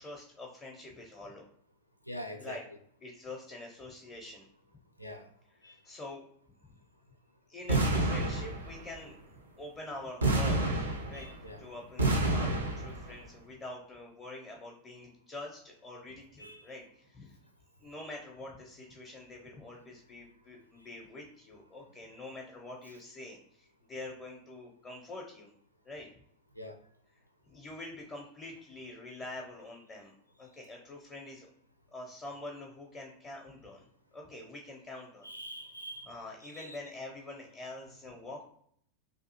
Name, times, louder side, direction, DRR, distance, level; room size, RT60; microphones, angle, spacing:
voice 1, 0.0-1.5 2.4-2.6 3.0-4.5 5.6-6.2 6.7-6.8 7.5-9.1 9.6-11.3 11.6-17.4 17.8-25.5 25.8-26.1 27.4-31.5 31.9-33.8 34.1-35.3 36.0-38.4, left 2 dB, 20° left, -1 dB, 0.5 m, -45 dB
voice 2, 2.1-2.6 5.0-5.3 5.6-5.8 11.1-11.6 16.4-16.7 26.6-26.8 35.2-36.1 36.4-36.8, equal, 90° left, 5 dB, 0.4 m, -44 dB
sound 1, 7.7-9.0 10.2-11.5 12.0-13.1, right 2 dB, 75° right, 0.5 m, -29 dB
2.6 x 2.4 x 2.7 m, 0.65 s
figure-of-eight pair, 90°, 0 cm